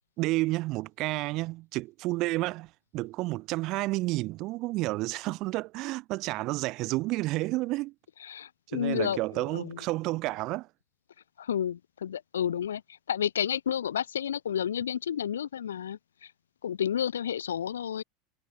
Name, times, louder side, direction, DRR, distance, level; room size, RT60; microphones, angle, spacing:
voice 1, 0.2-7.9 8.7-10.7, right 20 dB, 45° right, 2.0 m, -30 dB
voice 2, 8.2-9.8 11.4-12.8 13.1-16.3 16.6-18.0, left 9 dB, 75° left, 1.1 m, -31 dB
figure-of-eight pair, 80°, 0 cm